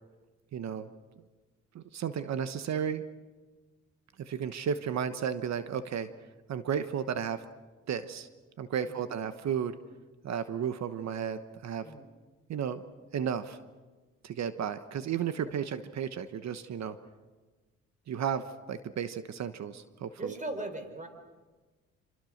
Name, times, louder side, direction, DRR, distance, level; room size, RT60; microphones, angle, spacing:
voice 1, 0.5-0.9 1.7-3.0 4.2-6.1 6.5-7.4 7.9-8.3 8.6-9.7 10.2-11.9 12.5-12.8 13.1-13.6 14.2-17.0 18.1-20.4, right 8 dB, 60° right, 11 dB, 1.2 m, -33 dB
voice 2, 20.2-21.1, right 2 dB, 25° right, 7 dB, 4.6 m, -38 dB
27.0 x 25.5 x 6.6 m, 1.3 s
cardioid pair, 90°, 30 cm